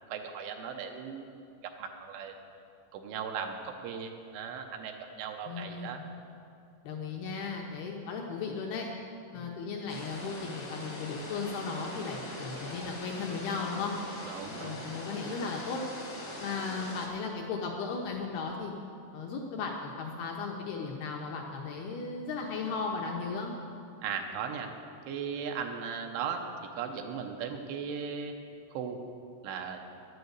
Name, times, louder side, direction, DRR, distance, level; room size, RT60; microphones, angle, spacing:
voice 1, 0.1-1.3 1.6-2.3 2.9-6.0 14.2-14.8 24.0-24.7 25.1-26.5 26.8-28.3 28.7-29.0 29.4-29.8, right 6 dB, 80° right, 4 dB, 3.2 m, -37 dB
voice 2, 5.5-6.1 6.8-8.9 9.3-14.0 14.5-15.8 16.4-18.7 19.1-23.5, left 4 dB, 75° left, 0 dB, 2.3 m, -36 dB
sound 1, 9.9-17.1, left 1 dB, 45° left, 1.0 m, -42 dB
11.5 x 9.4 x 8.0 m, 2.6 s
omnidirectional pair, 5.6 m